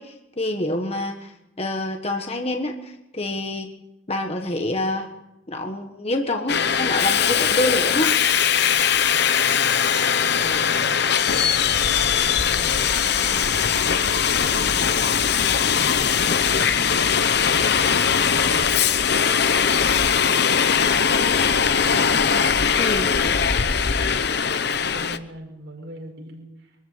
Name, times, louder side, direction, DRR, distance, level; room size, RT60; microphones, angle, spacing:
voice 1, 0.0-1.3 1.6-3.7 4.1-5.1 5.5-8.1 10.8-10.9 22.8-23.4, left 1 dB, 30° left, 4 dB, 1.5 m, -27 dB
Subway metro underground, 6.5-25.2, left 7 dB, 55° left, 0.9 m, -20 dB
voice 2, 9.0-14.9 15.3-16.9 17.4-18.9 20.0-22.0 22.9-24.5 24.8-26.8, right 1 dB, 60° right, 2 dB, 5.5 m, -41 dB
24.5 x 14.0 x 8.1 m, 0.93 s
head